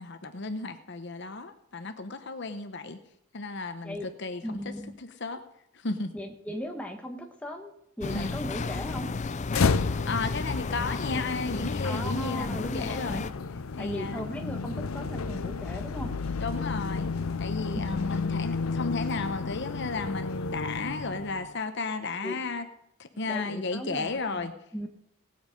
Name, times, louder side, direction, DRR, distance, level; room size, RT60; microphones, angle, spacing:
voice 1, 0.0-3.0 3.3-4.7 5.0-5.4 5.7-6.1 8.1-8.4 10.0-13.2 13.7-14.3 16.4-22.7 23.0-24.5, left 3 dB, 55° left, 8 dB, 0.9 m, -34 dB
voice 2, 4.4-5.0 6.1-7.7 8.0-9.1 11.8-13.3 13.8-16.3 17.7-18.1 22.2-22.4 23.2-24.9, left 1 dB, 5° left, 2 dB, 1.4 m, -37 dB
sound 1, 8.0-13.3, left 4 dB, 35° left, 0.4 m, -33 dB
sound 2, 9.5-21.5, left 4 dB, 85° left, 0.6 m, -32 dB
18.0 x 7.9 x 5.2 m, 0.77 s
head